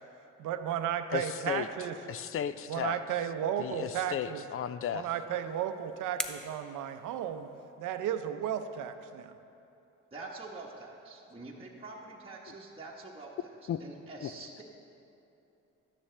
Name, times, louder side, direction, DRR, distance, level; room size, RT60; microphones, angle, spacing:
voice 1, 0.4-1.9 2.7-4.4 4.9-7.5 7.8-9.3, right 9 dB, 85° right, 9 dB, 0.6 m, -34 dB
voice 2, 1.1-1.7 2.1-3.0 3.6-5.1 13.7-13.8 14.2-14.3, left 9 dB, 50° left, 14 dB, 0.4 m, -34 dB
sound 1, 5.1-7.8, equal, ahead, 0.6 m, -44 dB
voice 3, 10.1-13.5 13.8-14.6, right 3 dB, 20° right, -4 dB, 1.1 m, -46 dB
12.5 x 9.9 x 3.3 m, 2.9 s
cardioid pair, 90°, 30 cm